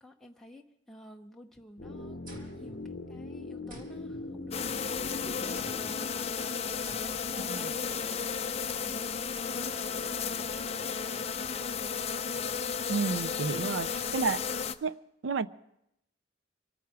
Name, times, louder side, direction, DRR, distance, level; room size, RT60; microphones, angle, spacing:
voice 1, 0.0-5.0 5.2-6.1 6.4-11.8, left 1 dB, ahead, 0.7 m, -52 dB
sound 1, 1.8-8.1, left 2 dB, 50° left, 0.8 m, -42 dB
sound 2, 2.3-3.3 3.7-5.0 5.5-6.1 6.8-7.5, right 1 dB, 45° right, 1.7 m, -51 dB
sound 3, 4.5-14.7, left 6 dB, 35° left, 0.5 m, -33 dB
voice 2, 12.9-14.4 14.8-14.9 15.2-15.5, right 4 dB, 85° right, 0.5 m, -31 dB
24.5 x 9.4 x 4.8 m
head